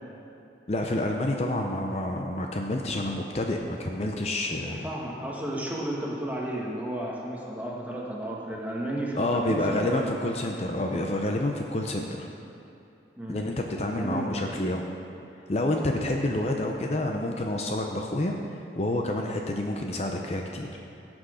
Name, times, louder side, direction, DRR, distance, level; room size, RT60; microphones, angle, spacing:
voice 1, 0.7-4.9 9.1-12.3 13.3-14.8 15.5-20.8, left 1 dB, 35° left, 2 dB, 0.6 m, -28 dB
voice 2, 4.6-10.3 13.2-13.5 14.0-14.4, right 1 dB, 10° right, -3 dB, 1.3 m, -33 dB
16.5 x 6.2 x 5.0 m, 2.7 s
head